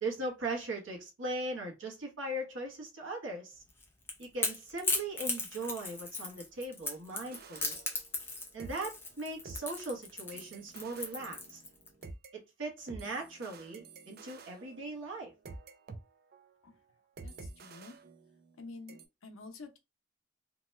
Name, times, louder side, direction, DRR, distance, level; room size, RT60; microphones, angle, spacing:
voice 1, 0.0-3.6 4.2-7.8 8.5-11.6 12.3-15.3, right 2 dB, 70° right, 1.1 m, -39 dB
Crackle / Crack, 3.7-11.9, left 2 dB, 10° left, 0.5 m, -36 dB
sound 1, 7.1-8.3 8.6-12.3 12.9-16.0 16.3-16.6 17.2-18.6 18.9-19.1, right 3 dB, 50° right, 0.4 m, -50 dB
voice 2, 17.2-18.0 18.6-19.8, left 3 dB, 85° left, 0.7 m, -49 dB
2.8 x 2.2 x 3.1 m
head